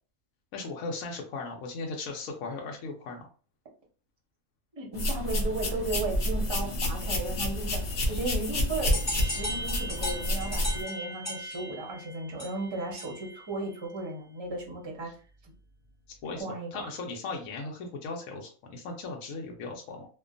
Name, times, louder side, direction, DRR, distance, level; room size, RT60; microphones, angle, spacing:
voice 1, 0.5-3.3 15.0-15.1 16.2-16.4 16.7-20.1, left 3 dB, 75° left, 1 dB, 1.0 m, -37 dB
voice 2, 4.7-15.1 15.4-15.5 16.4-16.8, right 2 dB, 30° right, -1 dB, 0.5 m, -35 dB
sound 1, 4.9-10.8, left 1 dB, 55° left, 0.7 m, -29 dB
sound 2, 8.9-13.4, left 1 dB, 20° left, 0.5 m, -37 dB
2.5 x 2.2 x 2.4 m, 0.37 s
omnidirectional pair, 1.5 m